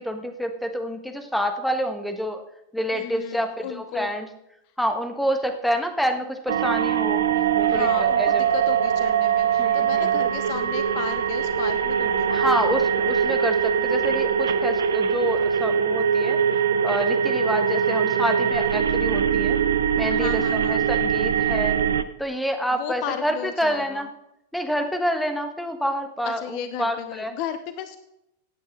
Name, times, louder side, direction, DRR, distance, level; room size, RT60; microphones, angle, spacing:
voice 1, 0.0-2.4 2.7-4.3 4.8-7.2 7.5-8.4 9.6-10.1 12.3-16.4 16.8-19.6 20.0-21.8 22.2-24.1 24.5-27.3, equal, 5° left, 7 dB, 1.4 m, -27 dB
voice 2, 2.9-4.1 7.7-12.5 20.1-20.9 22.7-24.1 26.2-28.0, left 9 dB, 45° left, 11 dB, 0.8 m, -34 dB
sound 1, 6.5-22.0, right 7 dB, 65° right, 0.7 m, -22 dB
16.5 x 8.8 x 3.7 m, 0.84 s
figure-of-eight pair, 90°, 0 cm